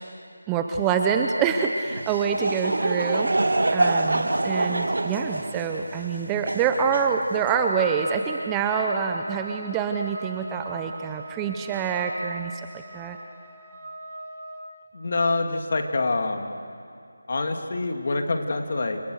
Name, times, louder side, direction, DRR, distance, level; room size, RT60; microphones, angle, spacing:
voice 1, 0.5-3.3 3.7-13.2, right 6 dB, 10° right, 4 dB, 0.7 m, -26 dB
Laughter / Crowd, 1.9-7.6, right 2 dB, 70° right, 2.2 m, -26 dB
Trumpet, 7.4-14.7, right 2 dB, 30° right, 2.4 m, -40 dB
voice 2, 14.9-16.6 17.3-19.0, left 3 dB, 45° left, 4 dB, 2.6 m, -26 dB
29.5 x 26.5 x 6.5 m, 2.4 s
figure-of-eight pair, 175°, 0 cm